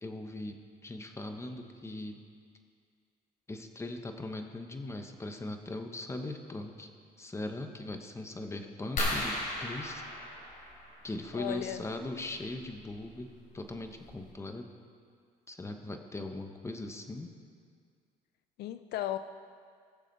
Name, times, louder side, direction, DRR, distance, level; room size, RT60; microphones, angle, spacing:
voice 1, 0.0-2.2 3.5-6.9 7.2-10.0 11.0-14.7 15.5-17.3, left 2 dB, 15° left, 5 dB, 1.1 m, -40 dB
sound 1, 9.0-11.3 12.9-13.1 13.7-13.8 14.1-14.3, left 1 dB, 50° left, 3.7 m, -35 dB
voice 2, 11.3-11.8 18.6-19.2, left 12 dB, 75° left, 11 dB, 0.5 m, -35 dB
20.5 x 7.1 x 4.1 m, 2.1 s
cardioid pair, 110°, 17 cm